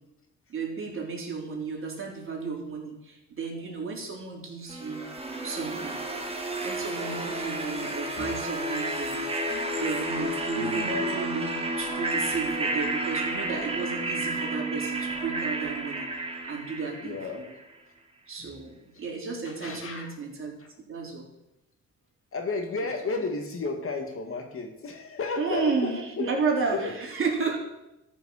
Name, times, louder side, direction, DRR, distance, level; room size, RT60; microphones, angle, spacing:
voice 1, 0.5-5.0 5.4-6.0 6.6-17.5 18.3-21.3 22.8-22.9 25.4-27.6, right 4 dB, 45° right, -1 dB, 3.8 m, -33 dB
sound 1, 4.7-17.6, right 1 dB, 20° right, 2.2 m, -31 dB
voice 2, 5.4-6.2 6.7-8.4 9.5-9.8 10.5-10.9 17.0-17.4 18.5-18.6 18.9-19.0 19.4-20.1 20.6-20.7 22.3-26.3 26.7-26.9, left 3 dB, 45° left, 4 dB, 2.0 m, -34 dB
13.0 x 5.9 x 7.2 m, 0.91 s
cardioid pair, 90°, 30 cm